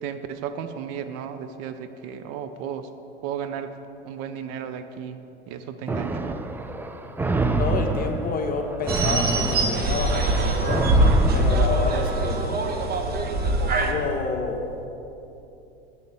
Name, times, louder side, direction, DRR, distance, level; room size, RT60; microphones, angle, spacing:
voice 1, 0.0-2.9 3.2-3.8 4.0-5.2 5.5-6.4, right 8 dB, 50° right, 9 dB, 0.7 m, -34 dB
sound 1, 5.9-12.3, right 3 dB, 5° right, 0.3 m, -28 dB
voice 2, 7.6-11.0 11.3-12.6 13.8-14.6, left 4 dB, 25° left, 3 dB, 1.3 m, -29 dB
sound 2, 8.9-13.9, right 2 dB, 30° right, 1.2 m, -22 dB
8.0 x 6.7 x 8.3 m, 3.0 s
hypercardioid pair, 95°, 32 cm